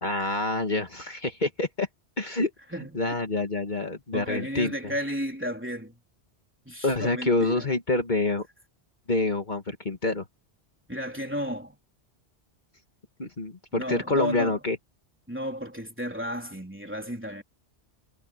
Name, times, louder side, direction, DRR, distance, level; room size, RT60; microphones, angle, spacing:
voice 1, 0.0-1.9 2.2-2.5 2.9-4.9 6.8-8.5 9.1-10.3 13.2-14.8, left 2 dB, 45° left, 1.8 m, -27 dB
voice 2, 2.7-3.1 4.1-6.0 6.7-7.7 10.9-11.8 13.7-14.6 15.3-17.4, equal, 10° right, 3.6 m, -33 dB
omnidirectional pair, 1.1 m